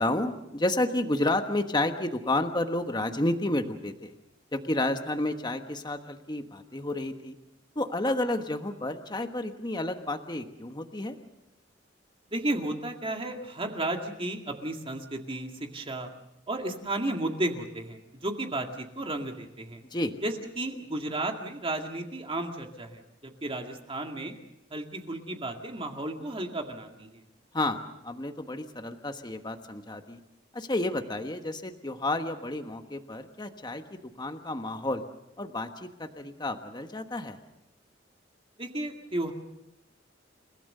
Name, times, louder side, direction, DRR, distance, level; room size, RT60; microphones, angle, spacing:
voice 1, 0.0-4.1 4.5-7.4 7.7-11.2 19.9-20.1 27.5-30.2 30.5-35.0 35.4-37.4, left 2 dB, 25° left, 6 dB, 1.3 m, -31 dB
voice 2, 12.3-16.1 16.5-19.8 20.2-24.3 24.7-27.2 38.6-39.3, right 1 dB, 30° right, 3 dB, 2.1 m, -33 dB
30.0 x 16.5 x 6.7 m, 0.85 s
head